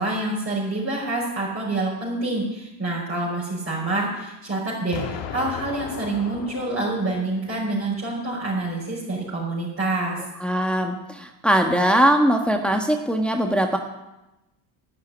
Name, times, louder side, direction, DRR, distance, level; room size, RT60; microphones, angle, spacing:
voice 1, 0.0-10.2, right 2 dB, 30° right, -5 dB, 5.2 m, -27 dB
Explosion, 4.9-7.9, left 8 dB, 80° left, 2.1 m, -36 dB
voice 2, 10.4-13.8, equal, ahead, 3 dB, 1.5 m, -21 dB
11.5 x 9.5 x 9.8 m, 0.97 s
cardioid pair, 110°, 46 cm